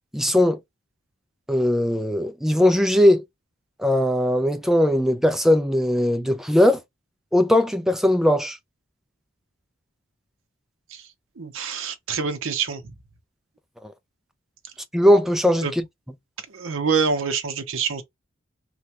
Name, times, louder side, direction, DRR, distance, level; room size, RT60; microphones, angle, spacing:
voice 1, 0.1-0.6 1.5-3.2 3.8-6.8 7.3-8.6 13.8-13.9 14.9-15.8, left 1 dB, ahead, 0.3 m, -19 dB
voice 2, 11.4-12.9 15.6-15.7 16.5-18.0, right 5 dB, 75° right, 0.6 m, -26 dB
3.3 x 2.2 x 2.8 m
head